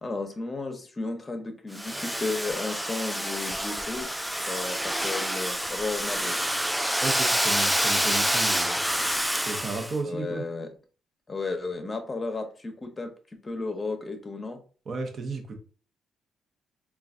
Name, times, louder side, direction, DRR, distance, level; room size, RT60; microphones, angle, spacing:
voice 1, 0.0-4.1 4.4-6.4 10.0-10.7 11.3-13.1 13.4-14.6, left 3 dB, 25° left, 5 dB, 0.8 m, -33 dB
Domestic sounds home sounds, 1.7-10.0, equal, ahead, 0.3 m, -27 dB
voice 2, 7.0-8.8 9.3-10.4 14.9-15.6, right 3 dB, 45° right, 4 dB, 0.9 m, -33 dB
3.8 x 2.4 x 2.4 m, 0.39 s
cardioid pair, 90°, 0 cm